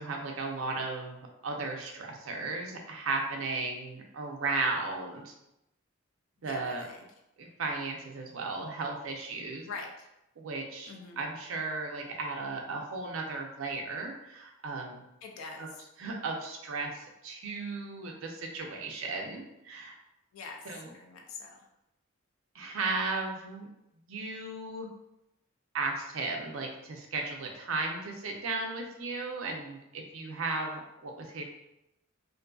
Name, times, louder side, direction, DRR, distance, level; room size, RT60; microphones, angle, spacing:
voice 1, 0.0-5.3 6.4-6.9 7.4-9.7 10.4-15.0 15.6-15.7 16.0-19.9 20.6-20.9 22.5-23.7 24.1-24.9 25.7-31.4, right 3 dB, 70° right, 2 dB, 0.5 m, -35 dB
voice 2, 6.4-7.0 9.7-10.1 10.9-11.3 15.2-15.8 20.3-20.6 20.9-21.6, left 4 dB, 70° left, 2 dB, 0.4 m, -44 dB
2.5 x 2.5 x 2.2 m, 0.88 s
head